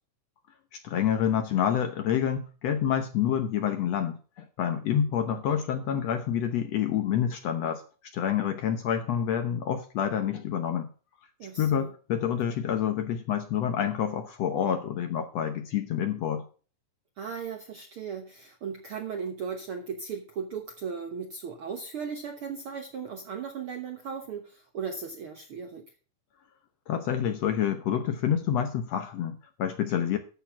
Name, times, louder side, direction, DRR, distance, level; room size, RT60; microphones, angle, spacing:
voice 1, 0.8-7.8 8.1-10.9 11.6-16.4 26.9-30.2, left 9 dB, 65° left, 8 dB, 1.7 m, -28 dB
voice 2, 11.4-11.9 17.2-25.8, right 6 dB, 65° right, 5 dB, 1.3 m, -37 dB
13.0 x 6.4 x 5.8 m, 0.37 s
omnidirectional pair, 3.8 m